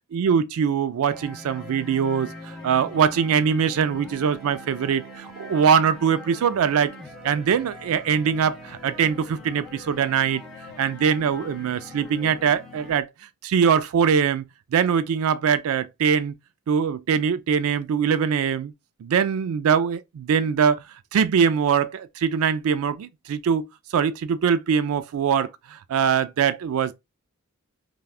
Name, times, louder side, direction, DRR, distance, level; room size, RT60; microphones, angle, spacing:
voice 1, 0.1-6.9 7.2-10.4 10.8-13.1 13.4-14.4 14.7-16.3 16.7-18.7 19.0-20.8 21.1-23.6 23.9-25.5 25.9-26.9, right 7 dB, 75° right, 0.3 m, -22 dB
sound 1, 1.1-12.9, left 1 dB, ahead, 0.7 m, -42 dB
3.4 x 2.2 x 2.3 m
head